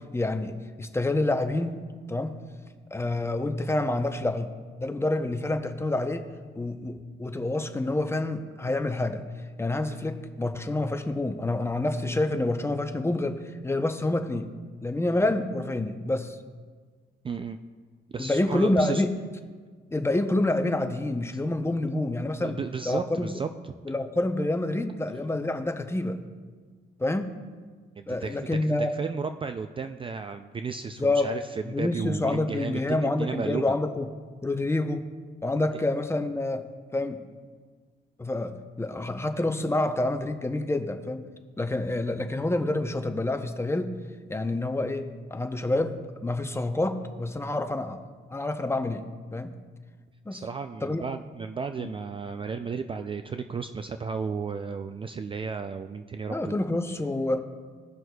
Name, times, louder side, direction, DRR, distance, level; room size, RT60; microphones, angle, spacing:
voice 1, 0.0-2.4 2.9-4.5 4.8-6.3 6.5-9.2 9.6-14.5 14.8-16.4 18.2-19.1 19.9-22.6 22.8-23.3 23.8-26.2 27.0-27.3 28.1-28.9 31.0-31.3 31.7-34.1 34.4-35.0 35.4-36.7 36.9-37.2 38.2-41.2 41.6-43.9 44.3-48.0 48.3-49.0 49.3-49.6 50.3-50.4 50.8-51.0 51.8-51.9 56.3-57.4, left 2 dB, 15° left, 7 dB, 0.7 m, -27 dB
voice 2, 17.2-17.6 18.1-19.0 22.4-23.5 28.0-28.5 28.8-33.6 50.3-56.6, right 5 dB, 25° right, 8 dB, 0.3 m, -34 dB
17.5 x 6.2 x 2.3 m, 1.6 s
cardioid pair, 90°, 20 cm